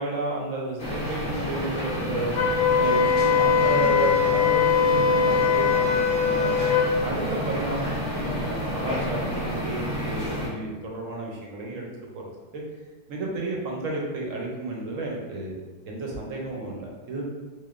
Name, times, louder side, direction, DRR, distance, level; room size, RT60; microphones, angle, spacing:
voice 1, 0.0-6.5 7.0-11.9 12.1-12.2 12.5-12.6 13.1-17.2, right 2 dB, 60° right, -1 dB, 0.9 m, -32 dB
sound 1, 0.8-10.5, equal, 45° left, 0.8 m, -30 dB
Wind instrument woodwind instrument, 2.3-6.9, left 6 dB, 90° left, 1.3 m, -21 dB
3.8 x 2.8 x 2.4 m, 1.3 s
omnidirectional pair, 1.8 m